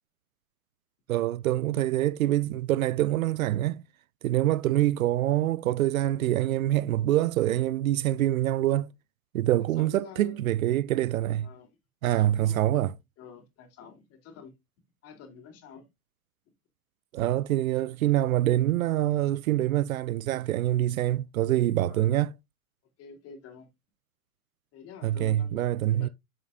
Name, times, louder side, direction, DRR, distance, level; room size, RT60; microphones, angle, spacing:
voice 1, 1.1-3.8 4.2-8.9 9.3-11.5 12.0-12.9 17.1-22.3 25.0-26.1, right 14 dB, 70° right, 0.6 m, -25 dB
voice 2, 9.8-10.4 11.4-11.7 12.1-12.8 13.2-14.5 15.0-15.9 21.9-22.1 23.0-23.7 24.7-26.1, left 7 dB, 35° left, 3.4 m, -48 dB
10.0 x 7.5 x 2.5 m
hypercardioid pair, 120°, 43 cm